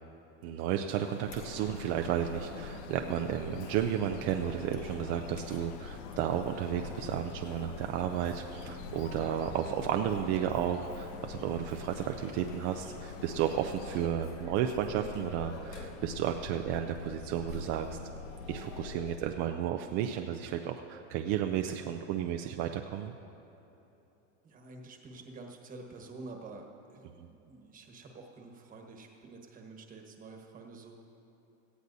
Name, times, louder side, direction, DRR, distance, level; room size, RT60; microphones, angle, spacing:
voice 1, 0.4-18.0 18.5-23.1, right 10 dB, 40° right, 4 dB, 0.5 m, -33 dB
sound 1, 0.9-14.1, left 7 dB, 50° left, 0.8 m, -50 dB
Chatter, 1.3-19.2, left 4 dB, 75° left, 1.9 m, -44 dB
voice 2, 24.4-31.0, right 3 dB, 20° right, 3 dB, 1.3 m, -48 dB
18.0 x 14.0 x 2.7 m, 3.0 s
supercardioid pair, 145°, 37 cm